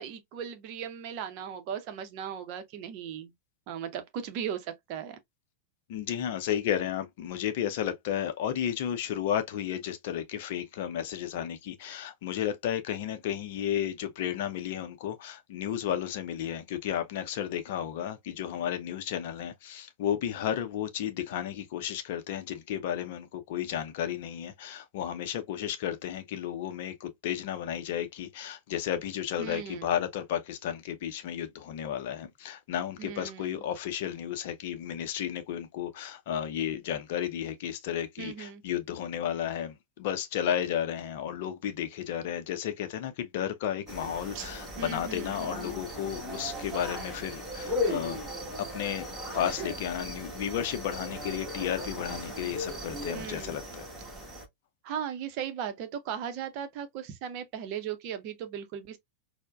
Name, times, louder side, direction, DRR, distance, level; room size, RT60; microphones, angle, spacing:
voice 1, 0.0-3.3 3.7-5.2 29.4-29.9 33.0-33.6 38.2-38.6 44.3-44.5 44.8-45.9 53.1-53.6 54.8-59.0, right 8 dB, 45° right, 0.7 m, -37 dB
voice 2, 5.9-48.2 48.7-49.1 49.3-53.9, left 10 dB, 50° left, 0.5 m, -33 dB
sound 1, 43.9-54.5, left 1 dB, 10° right, 1.3 m, -37 dB
4.4 x 2.1 x 2.3 m
figure-of-eight pair, 90°, 0 cm